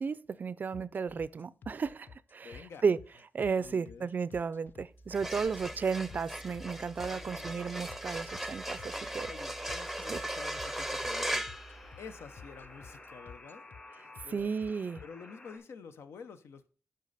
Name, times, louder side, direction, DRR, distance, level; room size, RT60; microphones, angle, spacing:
voice 1, 0.0-3.0 3.3-9.3 10.1-10.2 14.3-15.0, right 5 dB, 45° right, 0.4 m, -33 dB
sound 1, 0.7-15.0, left 6 dB, 55° left, 0.3 m, -51 dB
voice 2, 2.4-2.8 3.5-4.1 5.4-5.9 7.0-7.6 8.1-8.2 9.0-11.6 12.0-13.7 13.9-14.5 15.0-16.7, left 6 dB, 85° left, 0.7 m, -50 dB
sound 2, 5.0-12.5, right 1 dB, ahead, 0.6 m, -38 dB
Alarm, 9.8-15.6, left 2 dB, 30° left, 1.9 m, -52 dB
8.3 x 5.5 x 4.0 m
wide cardioid pair, 105°, 4 cm